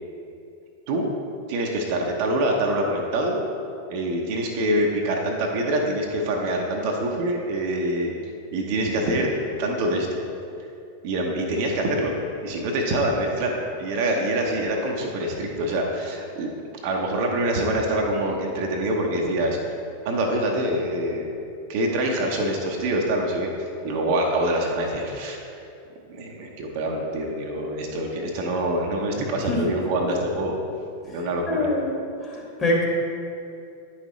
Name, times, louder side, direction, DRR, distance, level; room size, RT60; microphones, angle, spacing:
voice 1, 1.5-3.4 3.9-8.1 8.5-9.3 9.6-10.2 11.0-12.1 12.4-16.5 16.8-19.6 20.0-21.2 21.7-25.4 26.1-30.6 31.1-31.7, right 1 dB, 45° right, 0 dB, 0.9 m, -25 dB
voice 2, 29.5-29.8 31.5-31.9 32.2-32.9, left 2 dB, 20° left, -3 dB, 1.8 m, -24 dB
9.7 x 5.6 x 3.2 m, 2.6 s
figure-of-eight pair, 90°, 0 cm